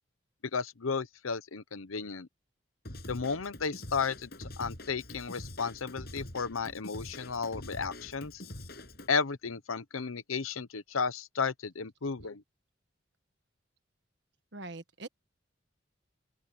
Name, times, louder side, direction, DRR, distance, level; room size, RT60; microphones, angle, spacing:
voice 1, 0.5-2.3 3.1-8.4 9.1-12.4, left 5 dB, 90° left, 0.9 m, -33 dB
Drum kit / Drum, 2.8-9.1, left 1 dB, 50° left, 7.5 m, -45 dB
voice 2, 14.5-15.1, right 2 dB, 55° right, 1.5 m, -42 dB
open air
head